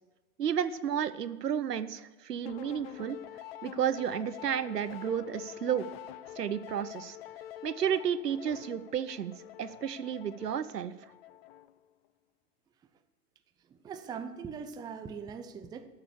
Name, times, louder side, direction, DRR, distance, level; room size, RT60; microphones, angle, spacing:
voice 1, 0.4-3.2 3.6-5.9 6.4-7.2 7.6-9.3 9.6-10.9, right 8 dB, 80° right, 14 dB, 0.8 m, -32 dB
sound 1, 2.5-11.9, left 12 dB, 40° left, 0.5 m, -46 dB
voice 2, 13.7-15.9, right 6 dB, 10° right, 7 dB, 0.5 m, -41 dB
13.0 x 6.9 x 8.2 m, 1.2 s
figure-of-eight pair, 100°, 47 cm